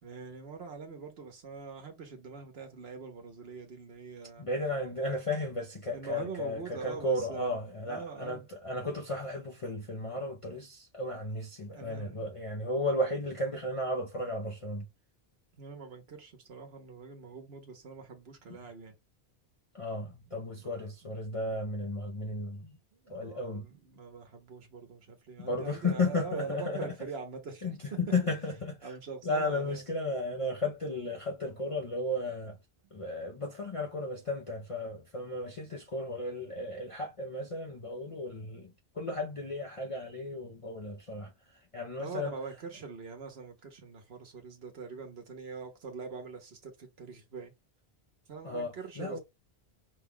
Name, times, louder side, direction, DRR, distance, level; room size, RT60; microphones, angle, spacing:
voice 1, 0.0-4.5 5.9-7.5 7.9-8.5 11.7-12.3 15.6-19.0 20.6-20.9 22.9-28.0 28.8-29.8 42.0-47.5 48.3-49.2, right 5 dB, 75° right, 1.2 m, -43 dB
voice 2, 4.4-14.9 19.7-22.8 23.1-23.7 25.4-26.9 27.6-28.9 29.2-32.6 32.9-42.3 48.4-49.2, left 2 dB, 35° left, 0.7 m, -34 dB
5.3 x 2.3 x 3.5 m
omnidirectional pair, 1.1 m